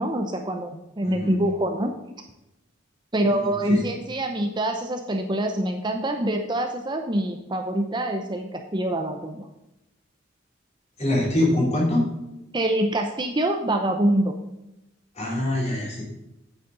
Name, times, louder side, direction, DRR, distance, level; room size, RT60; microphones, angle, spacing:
voice 1, 0.0-1.9 3.1-9.5 12.5-14.3, right 1 dB, 25° right, 4 dB, 0.7 m, -25 dB
voice 2, 1.0-1.3 3.7-3.8 11.0-12.0 15.2-16.0, left 1 dB, 35° left, -3 dB, 3.4 m, -23 dB
9.3 x 8.3 x 3.9 m, 0.91 s
head